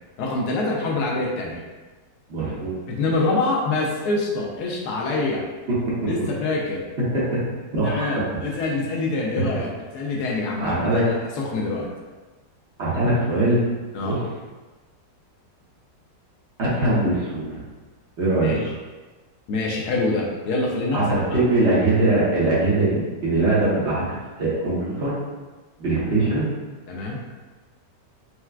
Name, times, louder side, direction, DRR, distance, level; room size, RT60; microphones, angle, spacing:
voice 1, 0.2-1.6 2.9-5.4 6.1-6.9 7.8-11.9 13.9-14.2 18.4-18.7 19.5-21.0 25.9-26.2 26.9-27.2, left 3 dB, 70° left, -2 dB, 1.0 m, -25 dB
voice 2, 2.3-2.8 5.7-5.9 7.3-7.4 7.7-8.0 10.6-11.0 12.8-13.6 14.0-14.2 16.6-17.6 18.2-18.5 20.9-24.1 24.4-25.1 25.8-26.5, right 2 dB, 45° right, -8 dB, 1.0 m, -21 dB
4.4 x 2.2 x 2.3 m, 1.3 s
omnidirectional pair, 1.9 m